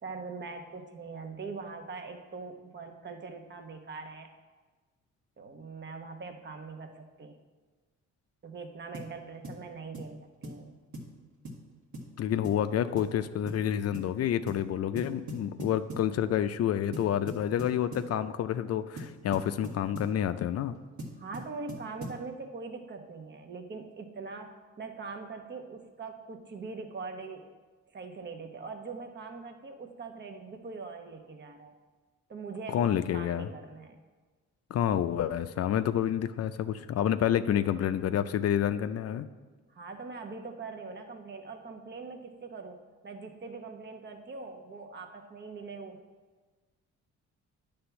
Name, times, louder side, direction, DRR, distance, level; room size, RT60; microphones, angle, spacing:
voice 1, 0.0-4.3 5.4-7.4 8.4-10.7 21.2-27.5 27.9-31.7 32.3-34.0 39.7-46.0, right 4 dB, 35° right, 5 dB, 1.0 m, -42 dB
sound 1, 8.9-9.1 9.4-9.6 9.9-10.2 10.4-10.6 10.9-11.1 11.4-11.6 11.9-12.1 12.4-12.6 13.0-13.2 13.5-13.6 13.9-14.1 14.5-14.7 15.0-16.1 16.9-18.1 19.0-20.2 21.0-22.2, right 1 dB, 70° right, 1.8 m, -41 dB
voice 2, 12.2-20.7 32.7-33.5 34.7-39.3, left 10 dB, 55° left, 11 dB, 0.4 m, -29 dB
9.6 x 3.5 x 6.9 m, 1.4 s
cardioid pair, 90°, 30 cm